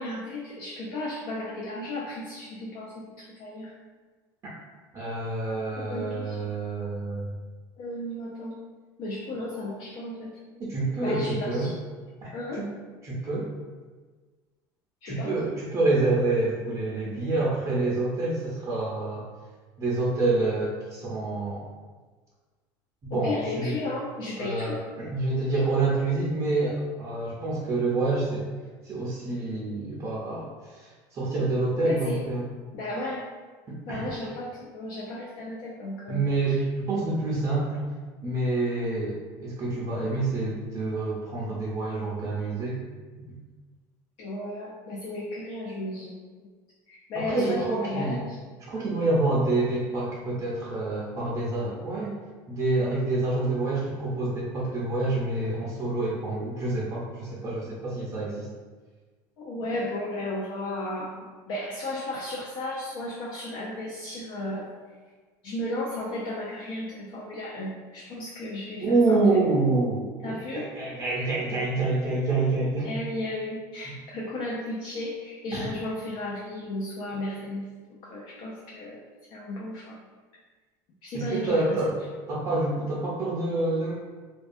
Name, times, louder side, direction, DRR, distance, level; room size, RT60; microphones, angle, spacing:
voice 1, 0.0-3.8 5.8-6.4 7.8-8.6 9.0-10.3 11.0-11.8 12.3-12.7 15.0-15.4 23.1-24.8 31.8-32.2 32.7-33.3 33.8-36.6 44.2-46.5 46.9-48.4 48.7-48.8 59.4-64.7 65.4-69.2 70.2-70.7 71.2-71.3 72.8-79.0 79.3-80.0 81.0-81.8, left 1 dB, 60° left, -4 dB, 0.4 m, -34 dB
voice 2, 4.9-7.3 10.6-11.7 12.2-12.3 12.6-12.7 13.0-13.5 15.1-19.3 19.8-21.7 23.0-23.8 24.4-28.5 28.8-32.5 33.7-34.1 36.1-37.9 38.2-42.8 43.3-43.4 47.2-48.2 48.7-52.2 52.5-58.5 68.8-72.9 75.5-75.7 81.1-82.0 82.3-83.9, right 2 dB, 35° right, -6 dB, 0.5 m, -27 dB
2.3 x 2.2 x 2.5 m, 1.4 s
supercardioid pair, 115°, 10 cm